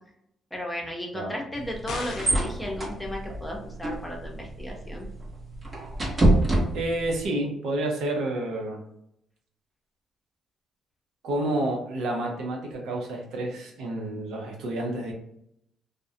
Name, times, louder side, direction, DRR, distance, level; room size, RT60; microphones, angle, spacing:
voice 1, 0.5-5.1, left 1 dB, 10° left, -1 dB, 0.7 m, -35 dB
sound 1, 1.5-7.3, right 1 dB, 30° right, 0.8 m, -27 dB
sound 2, 1.9-2.6, left 4 dB, 75° left, 0.4 m, -36 dB
voice 2, 6.7-8.8 11.2-15.1, right 1 dB, 85° right, 0 dB, 0.6 m, -29 dB
2.3 x 2.1 x 2.7 m, 0.76 s
cardioid pair, 90°, 0 cm